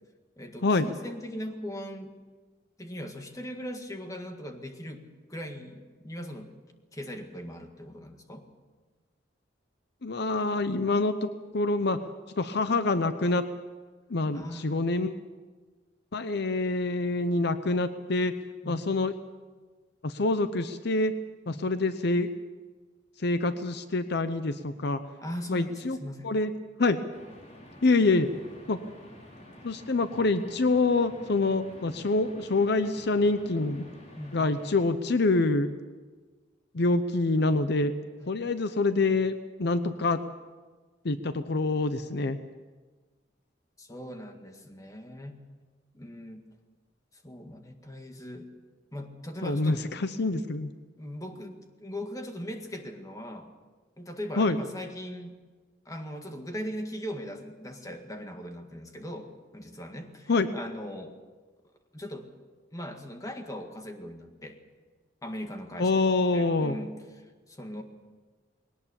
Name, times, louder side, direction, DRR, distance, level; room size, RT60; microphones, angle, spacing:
voice 1, 0.4-2.2 2.8-5.0 5.3-6.5 6.9-8.5 14.3-14.8 18.6-18.9 21.5-21.6 25.2-26.3 34.2-34.5 38.2-38.3 43.8-45.4 45.9-46.5 47.2-48.5 48.9-49.8 51.0-53.5 54.0-55.4 55.9-61.2 61.9-62.3 62.7-64.6 65.2-67.8, equal, 20° left, 5 dB, 1.8 m, -39 dB
voice 2, 10.0-12.0 12.4-13.4 14.1-15.1 16.1-18.3 18.7-19.1 20.0-21.1 21.5-22.3 23.2-25.0 25.5-26.0 26.2-26.5 26.8-27.0 27.8-28.3 28.7-28.8 29.6-33.8 34.3-35.7 36.7-37.9 38.3-40.2 41.0-42.4 49.4-50.7 54.4-54.6 60.3-60.5 65.8-66.8, left 3 dB, 65° left, 11 dB, 0.8 m, -26 dB
sound 1, 27.1-34.9, left 1 dB, 40° left, 4.1 m, -50 dB
20.5 x 18.0 x 7.1 m, 1.4 s
head